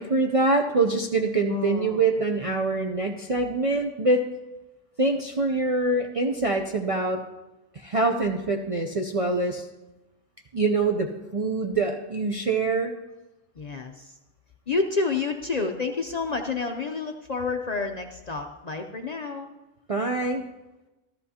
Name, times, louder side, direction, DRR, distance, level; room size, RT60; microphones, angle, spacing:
voice 1, 0.0-4.3 5.0-7.2 7.7-9.7 10.5-12.9 19.9-20.4, right 3 dB, 45° right, 2 dB, 0.4 m, -24 dB
voice 2, 1.5-2.0 13.6-14.2 14.7-19.5, left 4 dB, 45° left, 4 dB, 0.5 m, -29 dB
13.5 x 13.5 x 2.8 m, 1.1 s
omnidirectional pair, 1.3 m